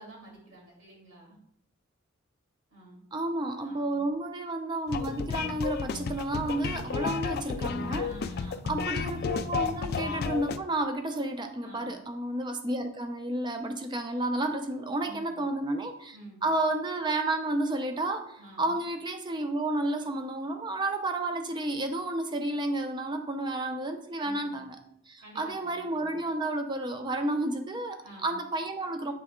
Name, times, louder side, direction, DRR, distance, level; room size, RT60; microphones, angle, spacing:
voice 1, 0.0-1.4 2.7-3.0 3.6-4.1 6.5-7.0 8.0-8.7 11.6-11.9 15.0-15.4 16.1-16.4 18.4-18.8 24.2-24.5 25.2-26.2 28.0-28.4, right 2 dB, 85° right, -3 dB, 2.4 m, -50 dB
voice 2, 3.1-8.1 8.7-24.8 25.1-29.1, right 2 dB, 20° right, 6 dB, 0.6 m, -31 dB
sound 1, 4.9-10.6, left 5 dB, 50° left, 0.3 m, -32 dB
8.0 x 3.4 x 3.6 m, 0.71 s
head